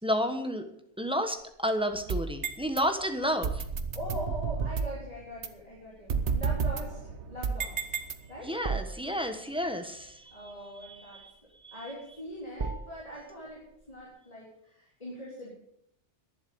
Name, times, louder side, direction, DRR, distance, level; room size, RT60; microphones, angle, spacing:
voice 1, 0.0-0.6 1.0-3.6 8.4-10.5 10.8-11.3 11.6-11.9, equal, 5° right, 6 dB, 1.2 m, -31 dB
sound 1, 1.4-14.1, right 4 dB, 30° right, 0.6 m, -43 dB
sound 2, 1.9-2.8 3.4-5.0 5.4-5.5 6.1-8.6, right 5 dB, 70° right, 1.2 m, -31 dB
voice 2, 3.9-7.8 8.3-8.6 10.3-11.2 11.7-15.5, equal, 30° left, -6 dB, 3.7 m, -42 dB
11.0 x 10.5 x 7.0 m, 0.75 s
omnidirectional pair, 1.2 m